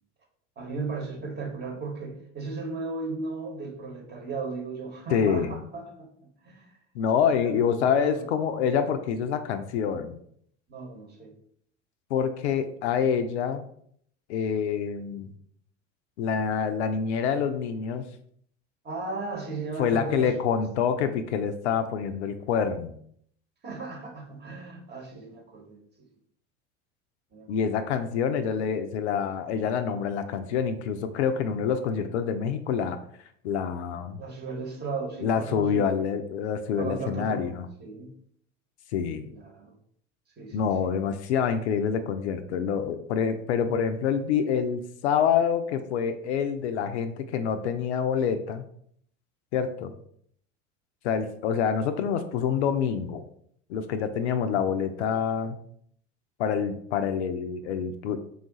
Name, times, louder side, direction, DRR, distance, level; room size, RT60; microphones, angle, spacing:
voice 1, 0.6-6.7 7.1-7.6 7.9-8.3 10.7-11.3 18.8-20.4 20.8-20.9 23.6-26.1 27.3-27.5 34.2-35.9 36.8-38.1 39.2-39.7 40.4-40.9, right 4 dB, 25° right, 1 dB, 1.1 m, -36 dB
voice 2, 5.1-5.6 6.9-10.2 12.1-13.7 14.3-15.3 16.2-18.0 19.8-23.0 27.5-33.0 33.4-34.2 35.2-37.7 38.9-39.3 40.5-48.6 49.5-49.9 51.0-53.2 53.7-55.6 56.4-58.2, left 7 dB, 60° left, 9 dB, 0.5 m, -26 dB
3.7 x 2.4 x 3.8 m, 0.65 s
figure-of-eight pair, 70°, 38 cm